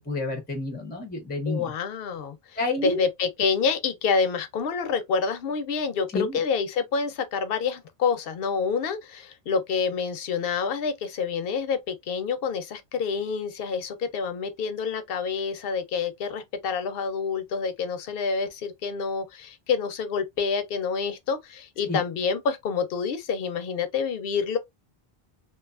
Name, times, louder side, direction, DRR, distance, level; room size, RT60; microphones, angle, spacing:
voice 1, 0.1-1.7 2.6-3.0 6.1-6.4 21.9-22.0, left 2 dB, 10° left, 0.5 m, -29 dB
voice 2, 1.5-2.4 2.8-24.6, left 5 dB, 65° left, 0.7 m, -27 dB
2.6 x 2.3 x 2.3 m
omnidirectional pair, 1.1 m